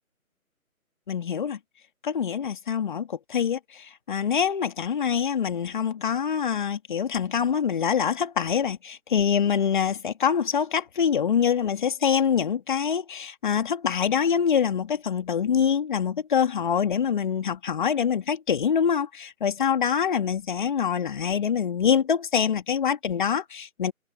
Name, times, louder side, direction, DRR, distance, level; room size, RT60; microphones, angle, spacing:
voice 1, 1.1-1.6 2.0-23.9, left 7 dB, 35° left, 2.8 m, -25 dB
figure-of-eight pair, 155°, 43 cm